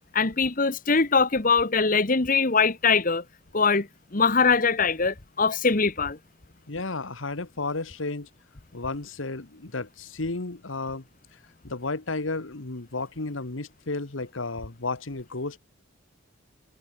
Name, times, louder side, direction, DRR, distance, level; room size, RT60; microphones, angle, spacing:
voice 1, 0.1-3.2 3.5-3.9 4.1-6.2, left 4 dB, 45° left, 1.4 m, -22 dB
voice 2, 6.7-8.3 8.7-11.0 11.3-11.4 11.6-15.6, left 3 dB, 75° left, 1.6 m, -32 dB
head